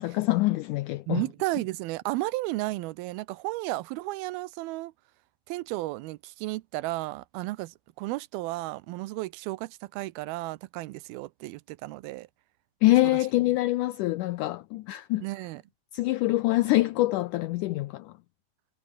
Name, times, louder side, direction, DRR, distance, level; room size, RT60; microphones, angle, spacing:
voice 1, 0.0-1.2 12.8-15.2 15.9-18.1, left 18 dB, 85° left, 1.8 m, -25 dB
voice 2, 1.1-4.9 5.5-12.3 15.2-15.6, right 19 dB, 85° right, 2.6 m, -33 dB
omnidirectional pair, 4.3 m